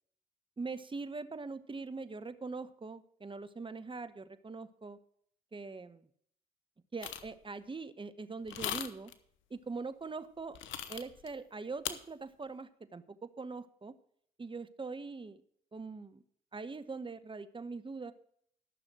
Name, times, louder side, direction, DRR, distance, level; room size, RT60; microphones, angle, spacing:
voice 1, 0.6-5.0 5.5-6.1 6.9-9.1 9.5-10.6 10.9-14.0 14.4-15.4 15.7-16.2 16.5-18.1, right 4 dB, 25° right, 12 dB, 1.1 m, -42 dB
sound 1, 7.0-7.3 8.5-9.1 10.5-11.3 11.9-12.0, left 10 dB, 75° left, 1.0 m, -38 dB
13.0 x 6.3 x 6.2 m, 0.65 s
hypercardioid pair, 50°, 20 cm